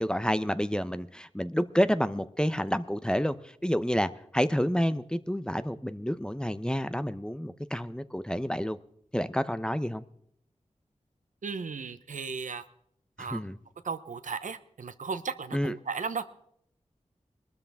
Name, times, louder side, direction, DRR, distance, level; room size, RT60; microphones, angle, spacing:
voice 1, 0.0-3.4 3.6-8.8 9.1-10.0 13.2-13.6 15.5-15.7, equal, 5° left, 13 dB, 0.7 m, -29 dB
voice 2, 11.4-12.6 13.2-13.4 13.8-16.2, right 5 dB, 85° right, 11 dB, 0.8 m, -35 dB
21.0 x 13.0 x 3.5 m, 0.70 s
cardioid pair, 50°, 13 cm